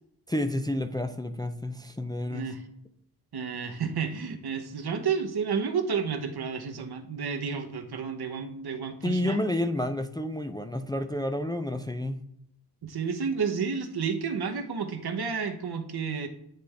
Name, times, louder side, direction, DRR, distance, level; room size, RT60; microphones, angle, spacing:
voice 1, 0.3-2.5 9.0-12.2, left 1 dB, 10° left, 8 dB, 0.3 m, -30 dB
voice 2, 2.3-2.6 3.3-9.4 12.8-16.3, right 6 dB, 75° right, 5 dB, 0.9 m, -31 dB
9.1 x 3.4 x 3.2 m, 0.78 s
wide cardioid pair, 100°, 39 cm